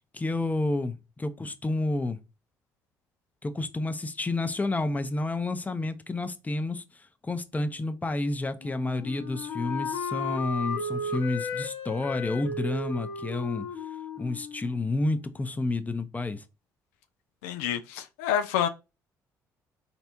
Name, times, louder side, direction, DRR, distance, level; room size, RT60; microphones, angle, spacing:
voice 1, 0.1-2.2 3.4-13.7 14.2-16.4, left 2 dB, 20° left, 0.6 m, -30 dB
Wind instrument woodwind instrument, 8.6-15.4, left 3 dB, 65° left, 0.9 m, -35 dB
voice 2, 17.4-18.7, left 9 dB, 85° left, 0.4 m, -28 dB
3.9 x 3.5 x 3.0 m
hypercardioid pair, 55°, 8 cm